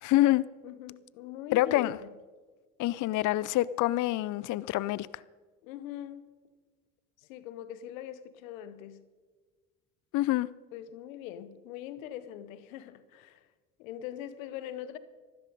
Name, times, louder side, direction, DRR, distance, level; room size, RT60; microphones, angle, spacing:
voice 1, 0.0-0.4 1.5-2.0 2.8-5.1 10.1-10.5, left 16 dB, 50° left, 0.4 m, -26 dB
voice 2, 0.6-2.1 5.6-6.3 7.3-9.0 10.7-13.5 13.8-15.0, left 10 dB, 90° left, 0.8 m, -42 dB
14.5 x 13.0 x 5.3 m
hypercardioid pair, 65°, 40 cm